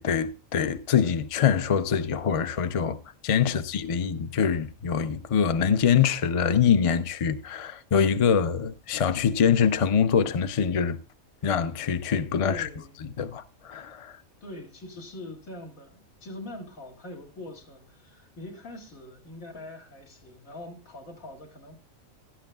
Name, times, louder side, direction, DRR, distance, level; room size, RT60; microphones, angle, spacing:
voice 1, 0.0-3.0 3.2-11.0 11.4-12.7 13.2-14.2, left 7 dB, 55° left, 0.3 m, -24 dB
voice 2, 12.4-12.9 14.4-21.8, left 1 dB, 80° left, 2.6 m, -43 dB
16.0 x 12.5 x 2.3 m
omnidirectional pair, 1.4 m